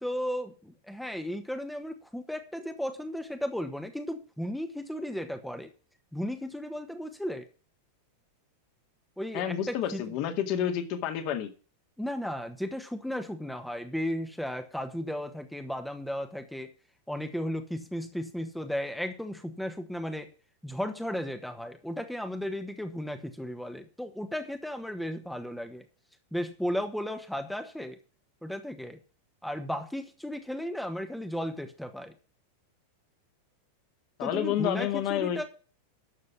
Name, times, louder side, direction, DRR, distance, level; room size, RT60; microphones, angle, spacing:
voice 1, 0.0-5.7 6.1-7.5 9.2-10.1 12.0-16.7 17.1-20.3 20.6-25.8 26.3-28.0 28.4-29.0 29.4-32.1 34.2-35.4, equal, ahead, 8 dB, 1.3 m, -35 dB
voice 2, 9.3-11.5 34.2-35.4, left 10 dB, 45° left, 7 dB, 2.1 m, -29 dB
12.5 x 6.8 x 5.9 m, 0.37 s
figure-of-eight pair, 90°, 0 cm